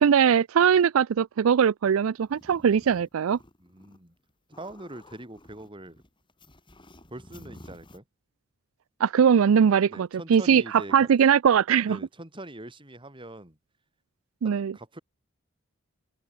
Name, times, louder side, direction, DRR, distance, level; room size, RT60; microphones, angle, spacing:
voice 1, 0.0-3.4 9.0-10.6 10.9-12.0 14.4-14.7, right 7 dB, 85° right, 0.4 m, -21 dB
sound 1, 2.1-4.0 4.3-8.0, left 1 dB, 25° left, 3.0 m, -51 dB
voice 2, 3.6-4.2 4.5-6.0 7.1-8.0 9.9-11.1 11.9-13.6 14.4-15.0, right 1 dB, 25° right, 4.3 m, -43 dB
open air
head